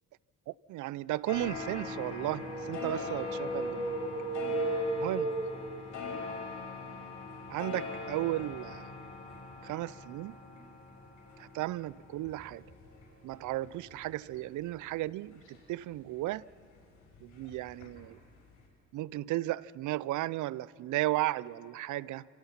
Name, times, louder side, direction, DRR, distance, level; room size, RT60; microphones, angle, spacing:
voice 1, 0.5-3.9 5.0-5.3 7.5-8.9 9.6-10.4 11.4-12.6 13.2-16.5 17.2-18.2 18.9-22.3, right 16 dB, 75° right, 0.5 m, -35 dB
sound 1, 1.3-16.4 16.7-18.1 18.4-18.5, left 4 dB, 90° left, 5.6 m, -42 dB
sound 2, 2.4-6.0, right 2 dB, 20° right, 3.8 m, -34 dB
28.5 x 15.5 x 5.8 m
cardioid pair, 90°, 30 cm